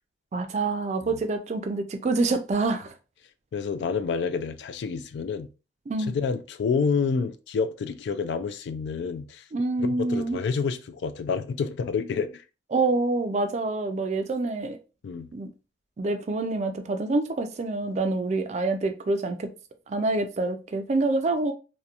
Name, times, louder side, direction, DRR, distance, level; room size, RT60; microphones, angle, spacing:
voice 1, 0.3-2.9 5.9-6.1 9.5-10.4 12.7-14.8 15.3-15.5 16.0-19.5 19.9-21.5, right 3 dB, 40° right, 0.3 m, -26 dB
voice 2, 3.5-5.5 6.1-9.4 9.8-12.4 15.0-15.3, left 5 dB, 80° left, 0.3 m, -28 dB
2.8 x 2.1 x 2.4 m
head